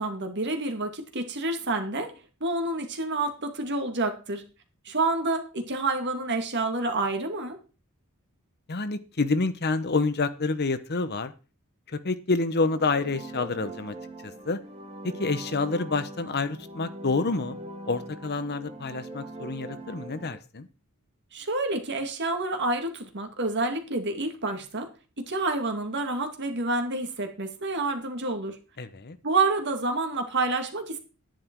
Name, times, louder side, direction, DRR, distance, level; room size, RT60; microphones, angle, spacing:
voice 1, 0.0-4.4 4.9-7.6 21.3-24.9 25.2-28.6 29.2-31.0, right 2 dB, 55° right, 5 dB, 2.2 m, -28 dB
voice 2, 8.7-11.3 11.9-13.9 14.2-14.6 15.0-17.6 17.9-20.7 28.8-29.2, left 3 dB, 50° left, 12 dB, 0.9 m, -28 dB
sound 1, 12.5-20.4, right 1 dB, 30° right, 2.1 m, -42 dB
10.5 x 10.5 x 4.6 m, 0.33 s
head